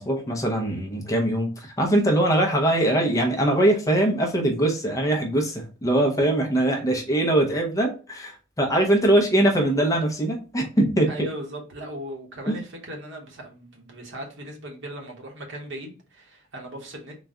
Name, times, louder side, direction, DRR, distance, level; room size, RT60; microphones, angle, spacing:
voice 1, 0.0-11.1 12.5-12.6, right 1 dB, 15° left, 0.6 m, -22 dB
voice 2, 11.1-17.2, equal, 55° right, 1.1 m, -38 dB
4.0 x 2.3 x 3.5 m
head